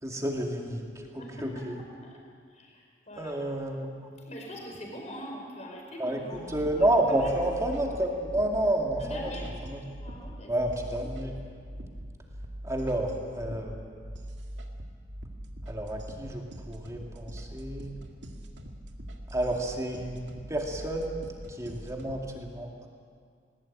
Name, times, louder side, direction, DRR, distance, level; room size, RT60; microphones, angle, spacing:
voice 1, 0.0-1.8 3.2-3.9 6.0-9.3 9.6-9.8 10.5-11.3 12.6-14.0 15.7-18.0 19.3-22.9, right 1 dB, 15° right, 1 dB, 2.4 m, -30 dB
voice 2, 1.2-1.6 2.0-2.1 2.5-3.3 4.2-6.7 7.1-7.5 9.0-9.5 10.0-10.5, equal, 40° left, 0 dB, 5.0 m, -42 dB
sound 1, 6.3-22.3, equal, 80° right, 2.1 m, -42 dB
19.5 x 19.5 x 9.0 m, 2.2 s
head